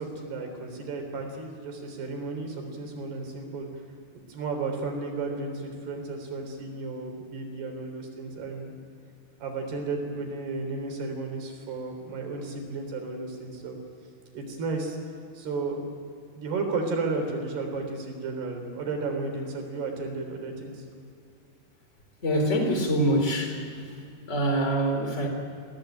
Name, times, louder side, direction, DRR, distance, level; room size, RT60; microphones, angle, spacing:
voice 1, 0.0-3.8 4.1-8.8 9.4-13.8 14.3-15.0 15.3-15.8 16.4-20.9, right 3 dB, 85° right, 3 dB, 5.7 m, -33 dB
voice 2, 22.2-24.0 24.3-25.3, right 1 dB, 20° left, 3 dB, 3.5 m, -25 dB
23.0 x 17.0 x 9.2 m, 2.6 s
omnidirectional pair, 4.5 m